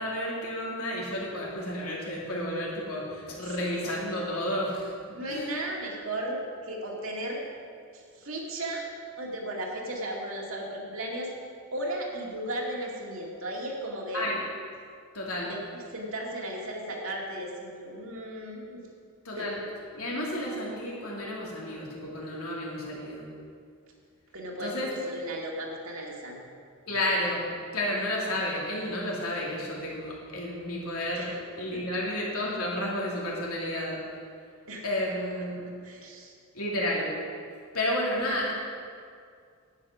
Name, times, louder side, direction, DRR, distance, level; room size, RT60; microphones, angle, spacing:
voice 1, 0.0-5.5 14.1-14.4 15.1-15.5 19.2-19.6 19.9-23.3 24.6-24.9 26.9-34.2 34.8-35.7 36.5-37.1 37.7-38.5, left 1 dB, 85° left, -4 dB, 2.9 m, -31 dB
voice 2, 5.1-7.5 7.9-8.9 9.2-11.3 11.7-14.3 15.5-18.8 19.3-19.5 24.3-24.7 25.1-26.4 31.1-31.4 31.7-32.0 34.7-34.9 35.6-36.3, right 1 dB, 65° right, -1 dB, 2.1 m, -35 dB
11.0 x 8.7 x 6.1 m, 2.2 s
head